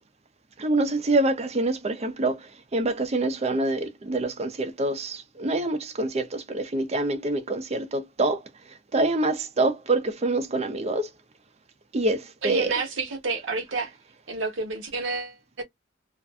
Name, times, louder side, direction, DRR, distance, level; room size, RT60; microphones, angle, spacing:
voice 1, 0.6-8.4 8.9-11.1 11.9-12.7, right 2 dB, 35° right, 0.5 m, -26 dB
voice 2, 12.4-13.9 14.3-15.6, right 3 dB, 80° right, 1.0 m, -29 dB
2.5 x 2.4 x 2.3 m
head